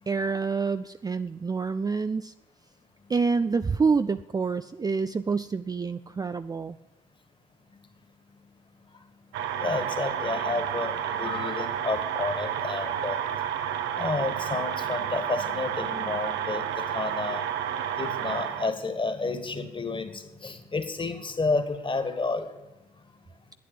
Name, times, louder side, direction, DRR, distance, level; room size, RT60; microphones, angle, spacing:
voice 1, 0.1-2.3 3.1-6.8, right 4 dB, 20° right, 11 dB, 0.4 m, -27 dB
sound 1, 9.3-18.7, right 9 dB, 70° right, 1.0 m, -31 dB
voice 2, 9.6-13.2 14.0-17.4 18.0-22.5, left 3 dB, 25° left, 9 dB, 2.1 m, -30 dB
11.0 x 9.4 x 7.4 m, 1.1 s
hypercardioid pair, 50°, 19 cm